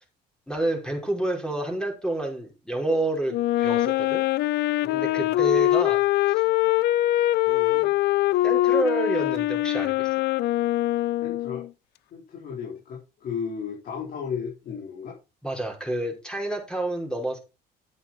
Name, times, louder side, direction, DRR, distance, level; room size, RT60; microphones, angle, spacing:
voice 1, 0.5-4.2 4.9-6.0 6.3-6.4 7.5-7.9 8.4-10.1 15.4-17.4, right 1 dB, 5° left, 5.2 m, -29 dB
Wind instrument woodwind instrument, 3.3-11.7, left 16 dB, 80° left, 0.5 m, -23 dB
voice 2, 4.8-5.4 11.2-11.7 12.1-15.2, left 6 dB, 60° left, 4.5 m, -34 dB
10.5 x 8.8 x 4.5 m
cardioid pair, 110°, 17 cm